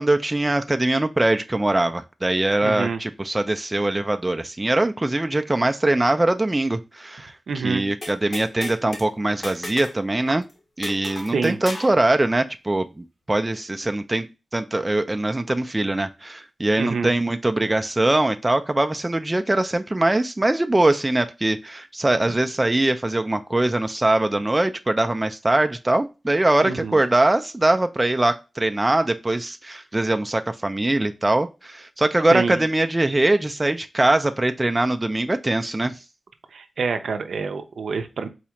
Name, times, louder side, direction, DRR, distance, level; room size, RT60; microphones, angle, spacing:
voice 1, 0.0-10.4 10.8-14.3 14.5-35.9, right 2 dB, 20° right, 7 dB, 0.3 m, -22 dB
voice 2, 2.6-3.0 7.5-7.8 11.3-11.6 16.8-17.1 26.6-27.0 32.3-32.6 36.5-38.3, right 5 dB, 90° right, 7 dB, 0.5 m, -26 dB
sound 1, 8.0-9.1 9.4-10.0 10.3-10.4 10.8-12.0, left 1 dB, 50° left, 1.0 m, -34 dB
4.2 x 2.4 x 2.8 m, 0.28 s
wide cardioid pair, 75°, 0 cm